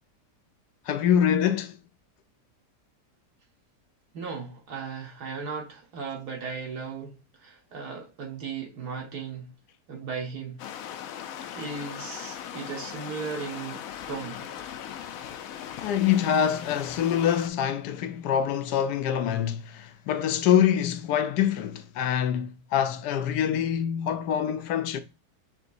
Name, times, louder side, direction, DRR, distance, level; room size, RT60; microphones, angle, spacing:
voice 1, 0.9-1.8 15.8-25.0, left 9 dB, 85° left, 1.2 m, -25 dB
voice 2, 4.1-9.5 9.9-10.6 11.5-14.5, right 5 dB, 75° right, 1.9 m, -36 dB
sound 1, 10.6-17.5, left 9 dB, 70° left, 0.9 m, -39 dB
5.9 x 3.5 x 2.6 m
omnidirectional pair, 1.7 m